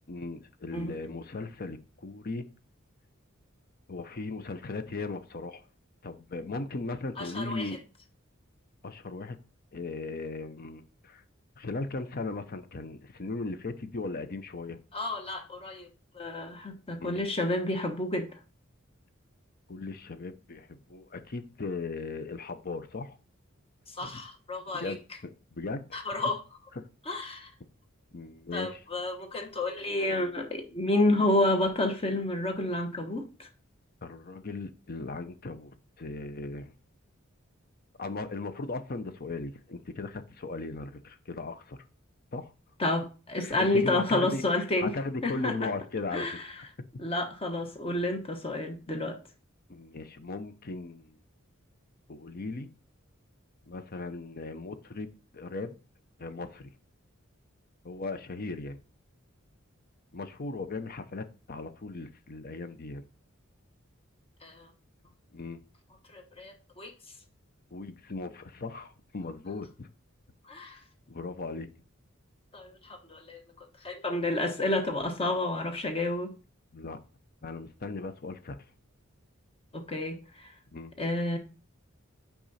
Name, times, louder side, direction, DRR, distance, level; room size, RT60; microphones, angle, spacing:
voice 1, 0.1-2.5 3.9-5.6 6.0-7.8 8.8-9.4 9.7-11.2 11.6-14.8 16.9-17.2 19.7-23.2 24.0-24.2 24.7-25.0 25.5-26.0 26.7-26.9 28.1-28.8 34.0-36.7 38.0-41.8 42.3-42.5 43.4-46.3 46.6-46.7 49.7-51.1 52.1-52.7 53.7-55.7 56.2-56.7 57.8-58.8 60.1-63.1 65.3-65.6 67.7-69.9 71.1-71.7 76.7-77.0 77.4-78.6 80.7-80.9, left 3 dB, 45° left, 0.7 m, -37 dB
voice 2, 7.2-7.7 14.9-15.9 16.1-18.3 24.0-24.9 25.9-26.4 27.1-27.5 28.5-33.5 42.8-44.9 45.2-45.5 46.1-46.4 47.0-49.2 64.4-64.7 66.1-66.9 70.5-70.8 72.5-73.4 73.8-76.3 79.7-80.2 81.0-81.4, left 2 dB, 30° left, 1.1 m, -30 dB
6.1 x 4.9 x 4.2 m
head